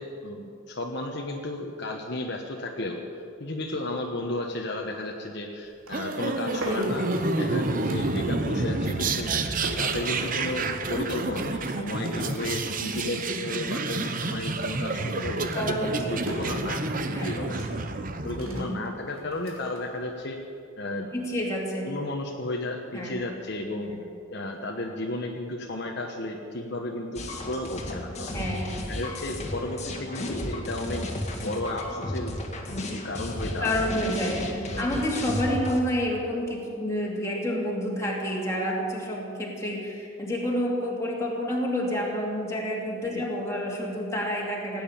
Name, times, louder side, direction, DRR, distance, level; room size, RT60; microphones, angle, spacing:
voice 1, 0.0-7.1 7.4-9.3 9.8-17.8 18.2-20.4 20.8-21.1 21.8-23.9 24.3-28.5 28.9-31.1 31.4-32.3 32.7-33.9 34.5-34.9 43.1-43.2, left 2 dB, 55° left, 1 dB, 1.2 m, -33 dB
sound 1, 5.6-8.6 8.9-13.0 13.3-13.9 14.2-20.5, right 1 dB, 85° right, 3.1 m, -42 dB
sound 2, 5.9-18.6, right 3 dB, 40° right, 0.9 m, -29 dB
voice 2, 15.5-15.9 17.1-17.4 18.5-18.9 21.1-21.9 22.9-23.2 23.9-24.0 28.3-28.8 33.6-44.8, equal, 15° left, -3 dB, 2.7 m, -29 dB
sound 3, 27.2-35.8, left 1 dB, 30° left, 1.9 m, -34 dB
17.5 x 9.2 x 9.0 m, 2.6 s
head